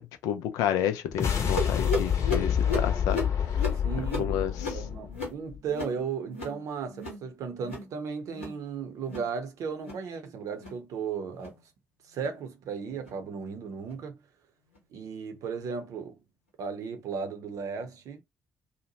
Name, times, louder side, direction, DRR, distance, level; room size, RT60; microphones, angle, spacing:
voice 1, 0.2-3.2 3.5-3.6 4.2-4.7, left 10 dB, 70° left, 0.4 m, -30 dB
sound 1, 1.0-5.6, left 8 dB, 50° left, 0.8 m, -28 dB
sound 2, 1.6-6.6 6.9-7.3 7.5-7.9 8.2-8.6 9.0-9.3 9.7-10.1 10.5-10.8 11.3-11.6 12.1-12.4 13.0-13.2 13.9-14.0 14.7-14.8, left 3 dB, 90° left, 1.0 m, -35 dB
voice 2, 3.8-4.4 4.7-11.6 12.1-14.2 14.9-16.2 16.6-18.2, right 6 dB, 60° right, 0.7 m, -35 dB
2.8 x 2.1 x 2.9 m
figure-of-eight pair, 40°, 6 cm